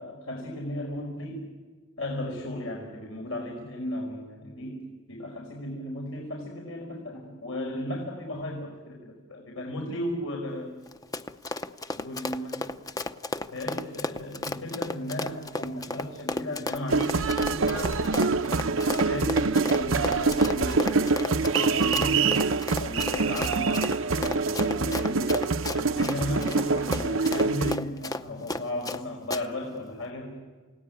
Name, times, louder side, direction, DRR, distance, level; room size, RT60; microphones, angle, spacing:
voice 1, 0.0-1.5 2.0-4.8 5.1-10.7 11.9-12.7 13.5-22.4 22.8-25.4 25.8-30.4, left 1 dB, 80° left, 0 dB, 5.1 m, -35 dB
Run, 10.9-29.0 29.3-29.4, left 2 dB, 20° left, 0.7 m, -33 dB
sound 1, 16.9-27.8, right 4 dB, 70° right, 0.8 m, -25 dB
29.0 x 17.5 x 9.5 m, 1.4 s
head